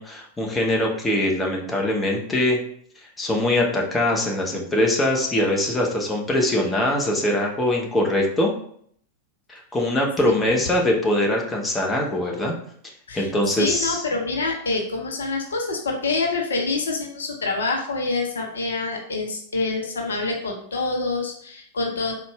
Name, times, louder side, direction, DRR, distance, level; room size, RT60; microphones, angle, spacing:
voice 1, 0.0-2.6 3.2-8.5 9.5-12.5 13.1-14.0, left 1 dB, 15° left, -1 dB, 0.7 m, -22 dB
voice 2, 13.6-22.1, left 3 dB, 70° left, 1 dB, 0.6 m, -26 dB
4.0 x 2.2 x 3.4 m, 0.63 s
figure-of-eight pair, 90°, 0 cm